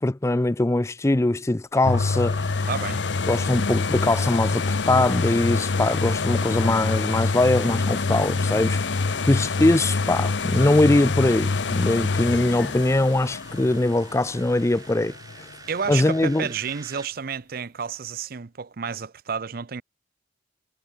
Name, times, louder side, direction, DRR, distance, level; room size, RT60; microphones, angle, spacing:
voice 1, 0.0-2.7 3.3-8.9 9.2-15.5 15.9-16.5, left 2 dB, 15° left, 0.4 m, -22 dB
sound 1, 1.7-17.1, right 4 dB, 20° right, 5.3 m, -48 dB
sound 2, 1.8-15.5 16.1-16.2, left 4 dB, 75° left, 0.8 m, -26 dB
voice 2, 2.7-3.0 15.7-19.8, right 6 dB, 55° right, 0.6 m, -31 dB
sound 3, 7.6-13.9, equal, 40° left, 4.6 m, -45 dB
head